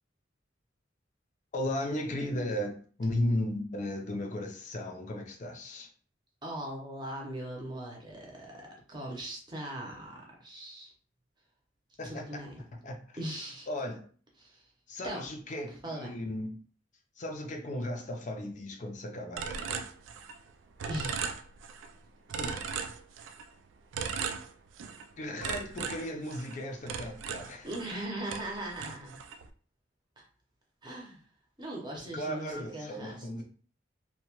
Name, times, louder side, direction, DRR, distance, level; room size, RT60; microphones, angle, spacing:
voice 1, 1.5-5.9 12.0-12.2 12.8-13.0 13.7-14.0 14.9-16.5 17.2-19.8 25.2-27.7 32.0-33.4, left 1 dB, 40° left, 2 dB, 0.5 m, -35 dB
voice 2, 6.4-10.9 12.0-12.6 13.2-13.7 14.4-14.6 15.0-15.2 15.8-16.1 20.9-21.1 22.4-22.6 27.6-29.2 30.2-30.3 30.8-31.2 31.6-33.3, right 1 dB, 25° right, -1 dB, 0.7 m, -39 dB
sound 1, 19.4-20.5 20.8-21.9 22.3-23.5 23.9-25.1 25.4-28.0 28.3-29.5, right 6 dB, 85° right, 0.3 m, -37 dB
2.7 x 2.2 x 2.9 m, 0.42 s
head